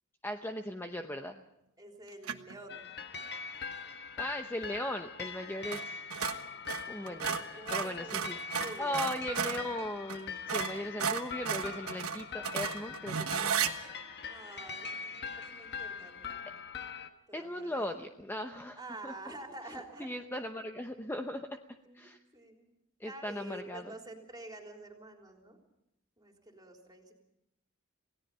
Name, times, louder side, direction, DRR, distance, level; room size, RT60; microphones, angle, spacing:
voice 1, 0.2-1.4 4.2-6.0 6.9-8.4 8.8-13.7 17.3-19.1 20.0-21.5 21.9-22.2 23.0-23.9, left 1 dB, 10° left, 5 dB, 0.8 m, -38 dB
voice 2, 1.8-2.9 7.0-9.1 14.3-16.5 17.3-18.0 18.8-20.1 21.8-22.0 22.3-22.7 23.0-25.6 26.2-27.1, right 2 dB, 20° right, 2 dB, 3.7 m, -48 dB
sound 1, 2.2-2.6 5.6-5.8 6.1-9.7 10.1-10.2 10.5-13.7, right 7 dB, 75° right, 1.3 m, -34 dB
sound 2, 2.7-17.1, left 5 dB, 50° left, 1.4 m, -42 dB
28.0 x 17.5 x 5.6 m, 0.83 s
head